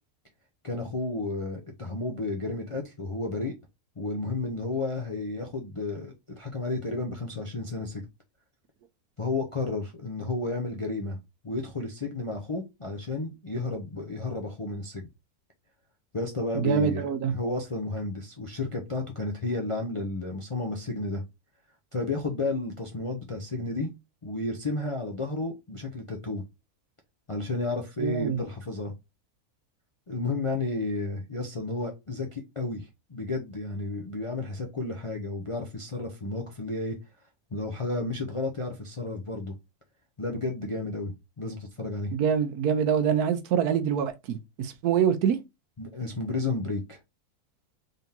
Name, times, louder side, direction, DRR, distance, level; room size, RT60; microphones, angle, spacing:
voice 1, 0.6-3.5 4.0-8.0 9.2-11.2 11.4-15.1 16.1-17.0 17.3-21.2 21.9-23.9 24.2-26.4 27.3-28.9 30.1-37.0 37.5-39.5 40.2-42.1 45.8-47.0, left 2 dB, 40° left, 0.4 m, -32 dB
voice 2, 16.5-17.3 28.0-28.4 42.1-45.4, right 8 dB, 80° right, 1.2 m, -25 dB
3.9 x 3.4 x 2.7 m
omnidirectional pair, 1.6 m